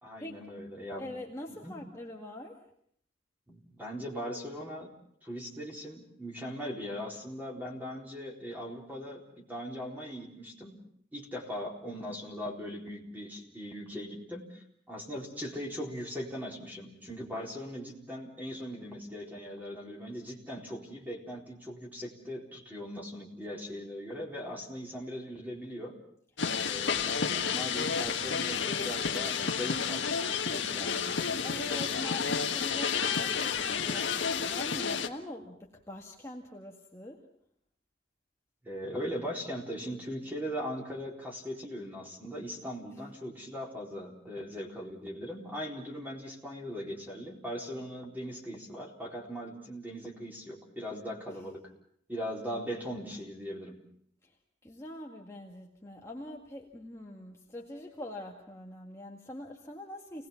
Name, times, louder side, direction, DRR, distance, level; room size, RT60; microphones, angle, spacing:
voice 1, 0.0-1.1 1.5-1.8 3.5-4.9 5.2-10.8 11.1-26.0 26.6-31.1 38.6-51.6 52.1-53.8, equal, 10° right, -1 dB, 4.2 m, -40 dB
voice 2, 1.0-2.6 30.8-30.9 31.4-37.3 54.2-54.4 54.6-60.3, left 1 dB, 15° left, -1 dB, 2.0 m, -44 dB
sound 1, 26.4-35.1, left 6 dB, 70° left, 1.6 m, -31 dB
29.0 x 19.5 x 5.9 m, 0.65 s
head